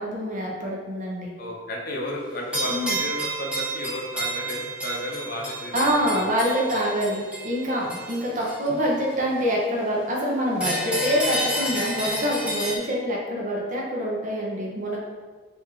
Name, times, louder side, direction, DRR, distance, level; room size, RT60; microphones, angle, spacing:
voice 1, 0.0-1.3 2.7-3.0 5.7-15.0, equal, 45° right, -3 dB, 0.8 m, -26 dB
voice 2, 1.4-6.3 12.6-12.7, left 1 dB, 55° left, -2 dB, 0.7 m, -33 dB
sound 1, 2.5-9.3 10.5-12.8, right 1 dB, 5° right, 0.7 m, -30 dB
3.1 x 2.7 x 3.6 m, 1.4 s
head